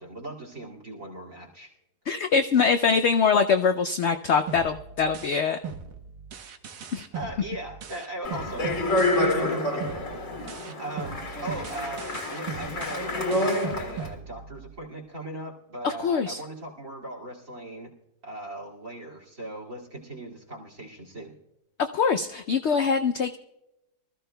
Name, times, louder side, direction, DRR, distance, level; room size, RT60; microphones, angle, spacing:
voice 1, 0.0-1.7 7.1-10.1 10.4-17.9 18.2-21.4, right 2 dB, 55° right, 0 dB, 2.8 m, -39 dB
voice 2, 2.1-5.6 6.9-7.1 15.8-16.4 21.8-23.4, left 5 dB, 70° left, 8 dB, 0.6 m, -23 dB
sound 1, 4.5-9.5 9.8-14.8, right 6 dB, 85° right, 1.5 m, -39 dB
Speech, 8.2-14.1, left 1 dB, 50° left, 2.1 m, -28 dB
24.0 x 14.0 x 2.2 m, 0.91 s
omnidirectional pair, 1.7 m